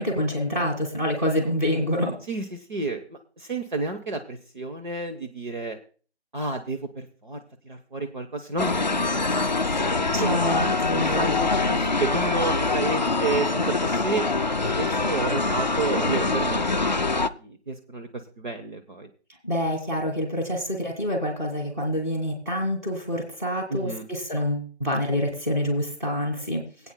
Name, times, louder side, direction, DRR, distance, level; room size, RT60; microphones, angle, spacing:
voice 1, 0.0-2.2 10.1-11.3 19.4-26.6, equal, 15° right, -1 dB, 2.0 m, -27 dB
voice 2, 2.3-3.0 3.4-5.8 6.3-9.1 10.2-10.4 10.9-14.3 14.8-16.6 17.4-18.1 18.4-19.1 23.7-24.0, right 3 dB, 50° right, 4 dB, 1.1 m, -30 dB
sound 1, 8.6-17.3, left 3 dB, 45° left, 0.4 m, -24 dB
23.5 x 8.8 x 2.2 m, 0.38 s
figure-of-eight pair, 170°, 32 cm